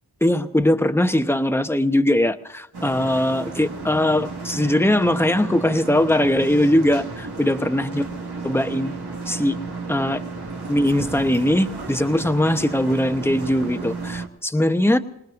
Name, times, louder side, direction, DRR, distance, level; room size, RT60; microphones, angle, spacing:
voice 1, 0.2-8.1 8.4-8.9 9.3-9.6 9.9-10.2 10.7-15.0, left 1 dB, 5° left, 8 dB, 1.0 m, -20 dB
sound 1, 2.7-14.3, right 4 dB, 70° right, 1.9 m, -33 dB
26.0 x 20.5 x 2.6 m, 0.80 s
wide cardioid pair, 75°, 40 cm